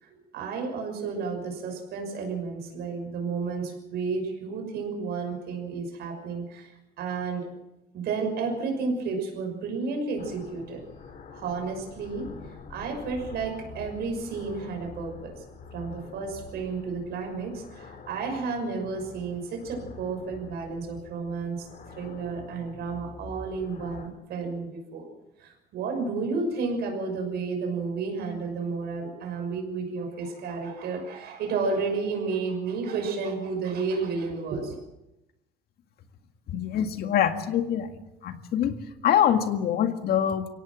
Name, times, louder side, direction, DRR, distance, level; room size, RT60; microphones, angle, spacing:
voice 1, 0.0-7.5 7.9-10.8 11.3-12.3 12.7-15.4 15.7-21.7 22.0-25.1 25.4-34.8, right 4 dB, 70° right, 4 dB, 6.2 m, -32 dB
sound 1, 10.2-24.1, left 4 dB, 55° left, 3.0 m, -46 dB
voice 2, 36.5-37.9 38.2-40.5, left 9 dB, 70° left, 7 dB, 2.0 m, -25 dB
23.0 x 17.5 x 7.4 m, 0.96 s
cardioid pair, 110°, 17 cm